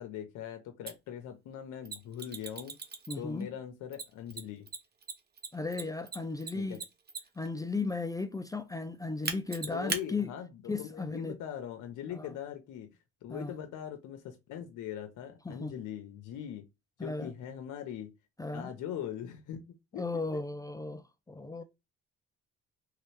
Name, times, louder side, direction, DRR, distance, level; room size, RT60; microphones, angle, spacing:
voice 1, 0.0-2.7 3.2-4.7 6.5-6.8 9.7-12.9 13.2-16.6 17.0-18.1 18.5-19.6 19.9-20.0 21.6-21.7, left 10 dB, 85° left, 0.7 m, -41 dB
Mechanisms, 0.9-1.0 1.8-3.4 3.9-7.5 9.2-10.0, right 5 dB, 35° right, 0.8 m, -38 dB
voice 2, 3.1-3.5 5.5-6.8 7.4-10.3 10.7-11.4 12.1-12.3 13.3-13.6 15.4-15.7 17.0-17.3 18.4-18.7 19.9-21.6, left 3 dB, 10° left, 0.4 m, -36 dB
3.2 x 2.9 x 3.2 m
cardioid pair, 90°, 30 cm